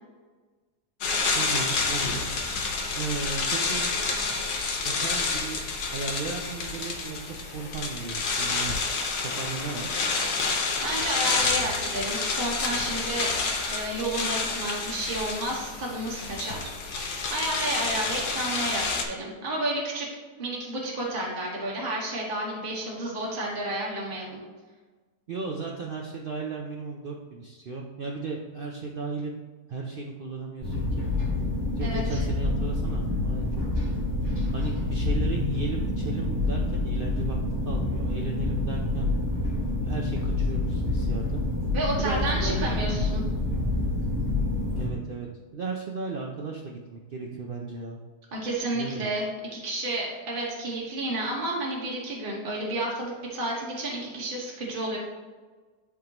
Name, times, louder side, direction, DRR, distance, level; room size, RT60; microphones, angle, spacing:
sound 1, 1.0-19.0, left 4 dB, 80° left, 1.4 m, -29 dB
voice 1, 1.4-2.3 3.0-3.9 4.8-5.6 5.9-8.8 9.2-9.9 25.3-29.4 29.7-31.1 31.8-33.6 34.5-37.4 37.7-39.1 39.8-41.4 42.0-42.7 44.8-45.3 45.5-48.0 48.7-49.1, right 4 dB, 85° right, 0 dB, 0.4 m, -35 dB
voice 2, 10.8-13.3 13.7-20.1 20.4-24.4 31.8-32.2 41.7-43.2 48.3-55.0, right 1 dB, 35° right, -4 dB, 1.4 m, -31 dB
sound 2, 30.6-44.9, left 2 dB, 15° right, 2.0 m, -27 dB
10.5 x 3.7 x 2.9 m, 1.4 s
omnidirectional pair, 1.7 m